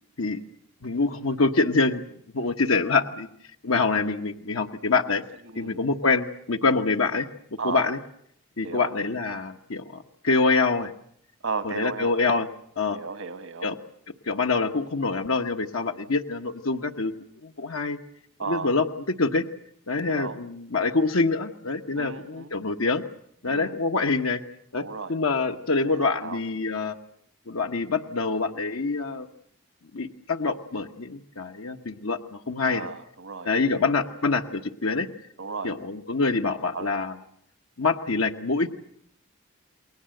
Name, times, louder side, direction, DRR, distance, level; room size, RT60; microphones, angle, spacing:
voice 1, 0.8-2.0 2.3-3.3 3.6-5.2 5.5-7.3 7.6-8.0 8.6-10.9 11.6-12.5 12.8-13.0 13.6-13.8 14.2-17.1 17.4-18.0 18.5-18.9 19.2-19.5 19.9-23.0 23.4-24.4 24.7-24.8 25.1-27.0 27.5-29.3 29.9-32.9 33.4-35.1 35.6-37.1 37.8-38.7, left 3 dB, 90° left, 5 dB, 1.2 m, -25 dB
voice 2, 5.4-5.8 7.6-7.9 8.6-8.9 11.4-12.1 12.9-13.7 18.4-18.7 20.1-20.4 22.0-22.7 23.5-23.8 24.8-25.1 25.8-26.4 32.7-33.9 35.4-35.7 36.7-36.9, right 4 dB, 80° right, 9 dB, 1.4 m, -35 dB
29.5 x 21.5 x 7.8 m, 0.70 s
head